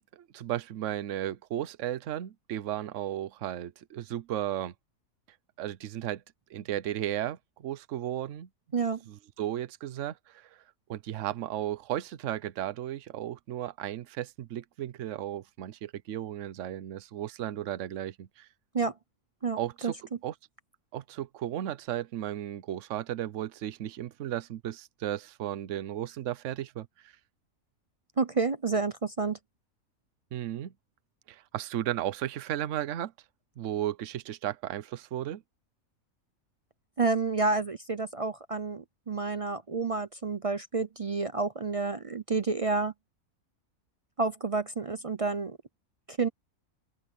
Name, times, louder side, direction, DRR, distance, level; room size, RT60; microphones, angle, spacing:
voice 1, 0.0-4.7 5.6-6.2 6.5-8.5 9.1-10.5 10.9-18.5 19.6-19.9 20.2-20.3 20.9-27.1 30.3-30.7 31.3-33.1 33.6-35.4, right 12 dB, 65° right, 1.1 m, -35 dB
voice 2, 28.2-29.4 37.0-42.9 44.2-45.6 46.1-46.3, right 4 dB, 45° right, 0.4 m, -29 dB
open air
omnidirectional pair, 1.4 m